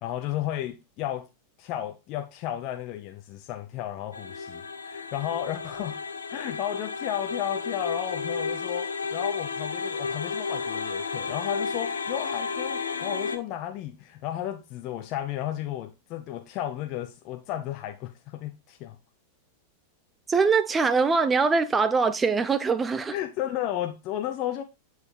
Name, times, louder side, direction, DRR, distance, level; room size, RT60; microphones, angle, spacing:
voice 1, 0.0-1.3 1.6-6.0 6.3-19.0 23.1-24.6, left 12 dB, 40° left, 0.8 m, -33 dB
sound 1, 4.1-13.4, left 4 dB, 70° left, 1.1 m, -32 dB
voice 2, 20.3-23.2, right 4 dB, 15° right, 0.8 m, -23 dB
9.7 x 4.7 x 3.3 m
figure-of-eight pair, 90°, 0 cm